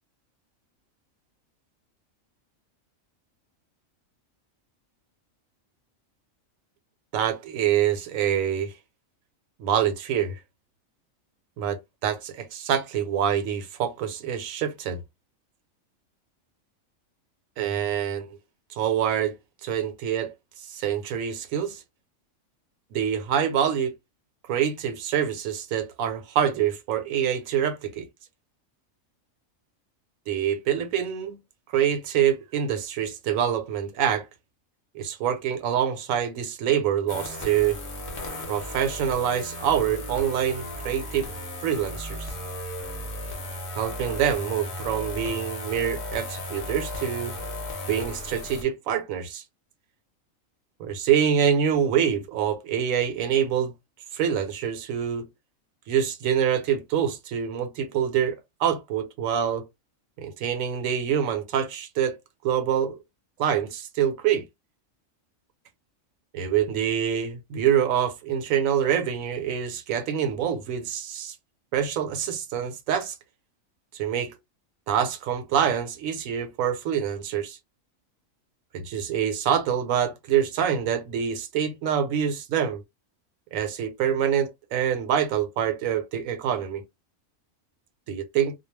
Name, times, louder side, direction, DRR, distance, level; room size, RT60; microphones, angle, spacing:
voice 1, 7.1-8.7 9.6-10.4 11.6-15.0 17.6-18.3 18.7-19.3 19.6-20.3 20.7-21.8 22.9-23.9 24.5-28.1 30.3-31.4 31.7-34.3 34.9-37.8 38.5-41.3 41.6-42.3 43.8-47.3 47.9-49.4 50.8-53.7 54.1-55.3 55.9-59.6 60.2-62.2 62.4-63.0 63.4-64.4 66.3-71.3 71.7-73.1 73.9-74.3 74.9-77.6 78.7-82.8 83.5-86.8 88.1-88.5, right 9 dB, 80° right, 1.0 m, -26 dB
sound 1, 37.1-48.6, left 1 dB, 50° left, 0.8 m, -35 dB
2.3 x 2.1 x 3.1 m
omnidirectional pair, 1.4 m